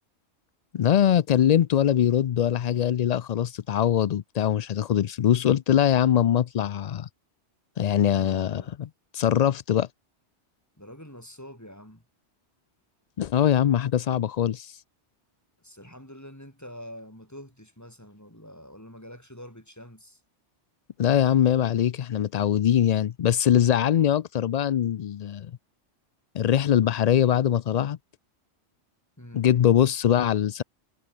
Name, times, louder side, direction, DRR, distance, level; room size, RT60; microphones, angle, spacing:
voice 1, 0.7-7.1 7.8-8.6 9.1-9.9 13.2-14.8 21.0-25.5 26.3-28.0 29.3-30.6, left 10 dB, 60° left, 0.4 m, -22 dB
voice 2, 7.9-8.8 10.8-12.0 15.6-20.2 23.5-23.7 29.2-29.5, equal, 15° left, 6.3 m, -46 dB
omnidirectional pair, 1.2 m